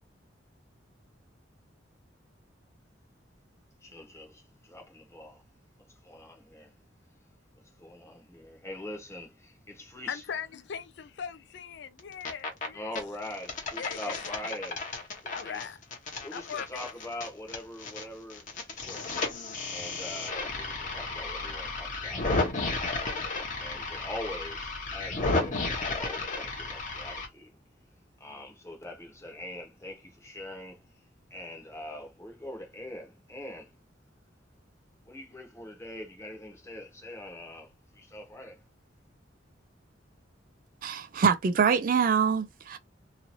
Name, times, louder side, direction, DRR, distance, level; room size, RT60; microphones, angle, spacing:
voice 1, 3.8-5.4 5.9-6.7 7.6-10.2 12.7-14.9 15.2-15.7 16.2-23.2 23.6-27.6 28.2-30.9 31.3-33.7 35.0-38.6, left 1 dB, 15° left, 1.1 m, -43 dB
voice 2, 10.1-12.9 13.8-14.4 15.3-15.8 16.3-16.7, left 7 dB, 65° left, 0.4 m, -39 dB
sound 1, 12.0-12.7 13.0-18.0 18.3-27.3, left 3 dB, 45° left, 1.0 m, -33 dB
voice 3, 40.8-42.8, right 6 dB, 45° right, 0.4 m, -25 dB
3.0 x 2.6 x 2.6 m
head